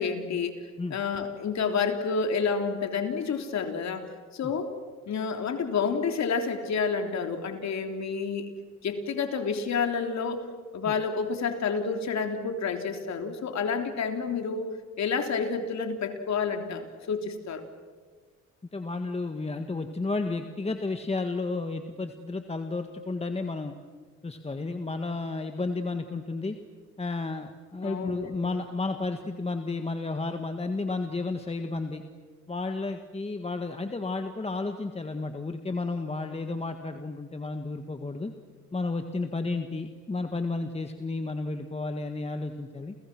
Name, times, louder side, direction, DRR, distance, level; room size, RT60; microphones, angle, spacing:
voice 1, 0.0-0.6 0.9-4.7 5.1-8.5 8.8-10.5 10.7-14.7 15.0-17.6 27.8-28.5, left 5 dB, 65° left, 5 dB, 3.5 m, -29 dB
voice 2, 18.7-23.7 24.2-26.6 27.0-32.0 32.5-38.3 38.7-43.0, left 3 dB, 20° left, 6 dB, 1.7 m, -32 dB
30.0 x 30.0 x 6.2 m, 1.5 s
cardioid pair, 90°, 30 cm